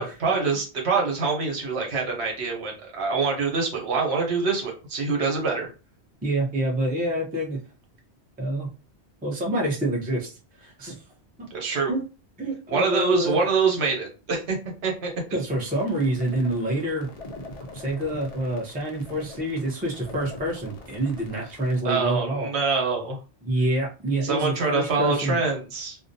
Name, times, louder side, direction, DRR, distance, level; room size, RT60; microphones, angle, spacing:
voice 1, 0.0-5.7 11.5-11.9 12.7-14.6 14.8-15.4 21.8-23.2 24.2-26.0, right 4 dB, 70° right, 1 dB, 1.0 m, -25 dB
voice 2, 6.2-7.6 8.4-8.7 9.2-10.3 10.6-11.0 11.9-12.0 12.4-13.4 15.3-17.1 17.7-22.5 23.4-25.4, right 1 dB, 10° right, -1 dB, 0.4 m, -27 dB
sound 1, 15.5-21.8, left 1 dB, 65° left, 0.3 m, -43 dB
2.5 x 2.1 x 2.6 m, 0.33 s
omnidirectional pair, 1.2 m